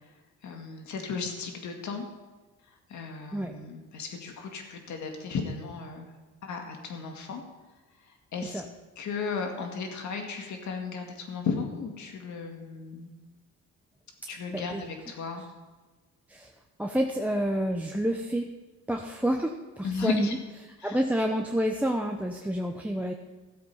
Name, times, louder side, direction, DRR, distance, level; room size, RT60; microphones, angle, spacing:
voice 1, 0.4-2.1 2.9-6.1 6.4-7.4 8.1-8.6 9.0-13.1 14.3-15.5 19.8-20.3 20.8-21.0, left 5 dB, 70° left, 3 dB, 2.1 m, -35 dB
voice 2, 14.5-14.8 16.3-16.5 16.8-18.5 18.9-20.4 20.8-23.1, equal, 5° right, 4 dB, 0.8 m, -28 dB
14.0 x 7.8 x 5.5 m, 1.2 s
cardioid pair, 90°, 30 cm